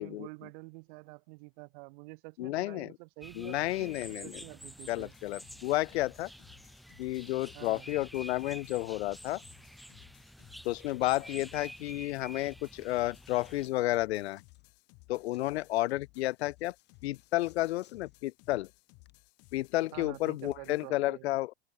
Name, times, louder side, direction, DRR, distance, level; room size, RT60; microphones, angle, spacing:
voice 1, 0.0-5.1 7.5-7.9 19.9-21.3, right 32 dB, 50° right, 1.0 m, -48 dB
voice 2, 2.4-2.9 3.4-4.4 4.9-6.3 7.0-9.4 10.6-14.4 15.1-16.7 17.0-18.7 19.5-21.5, left 17 dB, 80° left, 0.5 m, -31 dB
sound 1, 3.2-13.7, equal, ahead, 1.5 m, -49 dB
sound 2, 4.9-20.9, left 28 dB, 50° left, 3.4 m, -60 dB
Coin (dropping), 12.4-19.1, left 12 dB, 35° left, 6.3 m, -69 dB
open air
hypercardioid pair, 120°, 32 cm